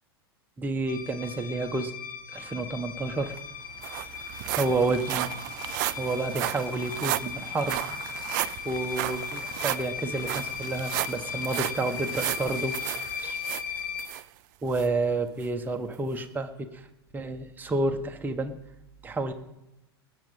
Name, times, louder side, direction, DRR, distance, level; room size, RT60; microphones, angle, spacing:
voice 1, 0.6-1.9 2.3-3.4 4.5-5.3 6.0-12.8 13.2-13.4 14.6-16.8 17.1-18.5 19.0-19.3, right 2 dB, 15° right, 5 dB, 1.2 m, -30 dB
sound 1, 0.9-14.1, left 8 dB, 55° left, 1.5 m, -37 dB
sound 2, 3.0-3.1 3.4-14.2 14.7-14.9 15.4-15.5, right 18 dB, 45° right, 0.4 m, -34 dB
19.5 x 6.6 x 5.6 m, 0.92 s
figure-of-eight pair, 90°, 13 cm